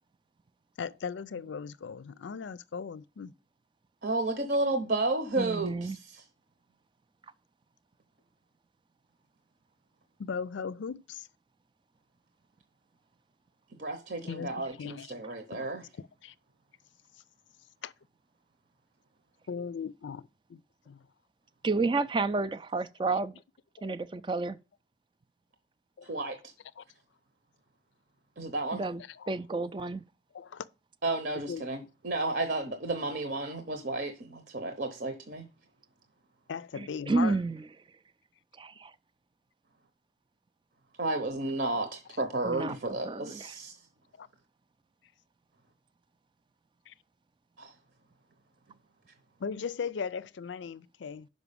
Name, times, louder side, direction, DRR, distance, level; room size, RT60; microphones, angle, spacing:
voice 1, 0.8-3.3 10.2-11.3 14.2-15.1 15.5-15.7 16.2-16.3 17.8-17.9 19.5-20.6 20.9-21.1 23.8-23.9 26.0-26.1 26.8-26.9 29.1-29.3 30.3-30.7 31.5-31.7 36.5-37.4 44.2-44.3 46.9-47.0 49.4-51.3, left 6 dB, 80° left, 0.4 m, -38 dB
voice 2, 4.0-6.2 13.8-15.8 26.0-26.4 28.4-28.8 31.0-35.4 41.0-43.8 47.6-47.7, right 2 dB, 60° right, 0.9 m, -32 dB
voice 3, 5.4-6.0 21.6-23.3 23.8-24.6 28.7-29.0 29.3-30.0 36.8-37.6 38.6-38.9 42.4-42.8 43.0-43.5, right 3 dB, 25° right, 0.3 m, -30 dB
6.0 x 5.4 x 6.8 m
head